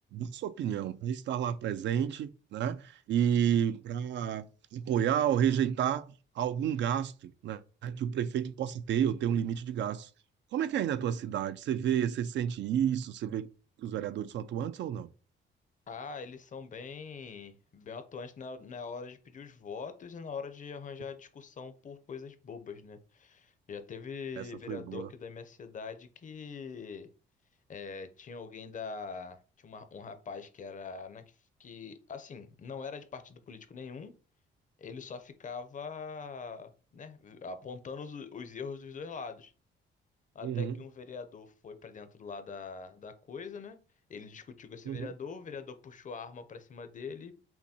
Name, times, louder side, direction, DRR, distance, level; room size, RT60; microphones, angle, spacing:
voice 1, 0.1-4.5 4.7-6.1 6.4-10.1 10.5-13.5 13.8-15.1 24.4-25.1 40.4-40.8 44.9-45.1, right 9 dB, 65° right, 0.4 m, -31 dB
voice 2, 15.9-27.1 27.7-31.2 31.6-34.1 34.8-39.5 40.3-43.8 44.1-47.3, left 5 dB, 40° left, 0.6 m, -43 dB
5.6 x 2.2 x 2.8 m
cardioid pair, 90°, 20 cm